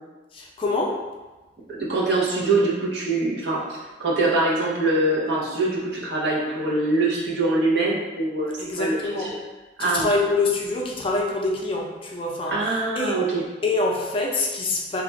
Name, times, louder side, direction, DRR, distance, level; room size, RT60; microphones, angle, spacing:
voice 1, 0.3-1.0 8.6-9.3 9.8-12.5 12.9-13.2 13.6-15.0, left 3 dB, 30° left, -1 dB, 0.4 m, -25 dB
voice 2, 1.7-9.3 9.8-10.1 12.5-13.4, right 2 dB, 75° right, -4 dB, 0.7 m, -24 dB
2.4 x 2.3 x 4.0 m, 1.2 s
head